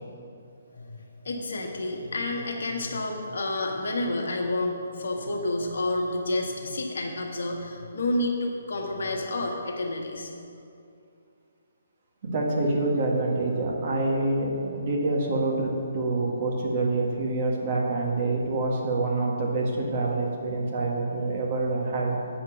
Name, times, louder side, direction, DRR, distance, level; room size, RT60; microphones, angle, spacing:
voice 1, 1.2-10.3, left 2 dB, 65° left, 0 dB, 1.5 m, -29 dB
voice 2, 12.2-22.2, right 2 dB, 40° right, -2 dB, 1.8 m, -26 dB
8.1 x 5.1 x 7.3 m, 2.5 s
figure-of-eight pair, 135°, 0 cm